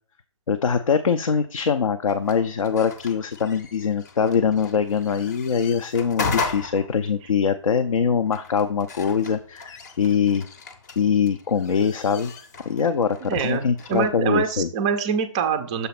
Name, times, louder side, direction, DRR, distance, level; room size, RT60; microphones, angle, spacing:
voice 1, 0.5-10.5 11.0-12.3 12.7-14.7, left 6 dB, 80° left, 7 dB, 0.6 m, -23 dB
sound 1, 2.1-14.1, left 3 dB, 35° left, 0.7 m, -36 dB
voice 2, 13.2-15.9, right 7 dB, 10° right, 8 dB, 0.4 m, -25 dB
6.8 x 3.1 x 5.9 m, 0.44 s
hypercardioid pair, 160°, 17 cm